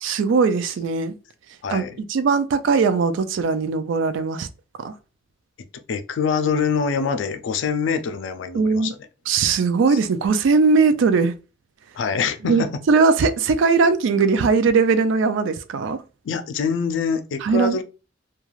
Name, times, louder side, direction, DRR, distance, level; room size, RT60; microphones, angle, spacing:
voice 1, 0.0-1.1 1.7-4.5 4.8-4.9 8.5-8.9 9.3-11.3 12.4-16.0 17.4-17.8, right 4 dB, 75° right, 0.3 m, -19 dB
voice 2, 5.9-9.0 11.9-12.7 16.2-17.8, left 5 dB, 70° left, 0.4 m, -24 dB
2.3 x 2.3 x 3.1 m
head